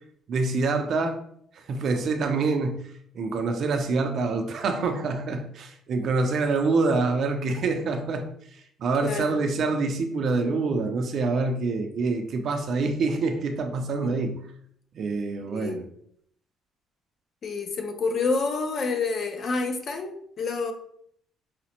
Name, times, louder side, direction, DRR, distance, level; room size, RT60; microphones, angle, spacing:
voice 1, 0.3-1.2 1.5-14.4 14.9-15.9, right 3 dB, 45° right, 5 dB, 0.4 m, -26 dB
voice 2, 9.0-9.4 14.0-14.3 15.5-15.9 17.4-20.7, left 4 dB, 35° left, 7 dB, 0.4 m, -28 dB
4.9 x 2.0 x 2.8 m, 0.66 s
cardioid pair, 165°, 0 cm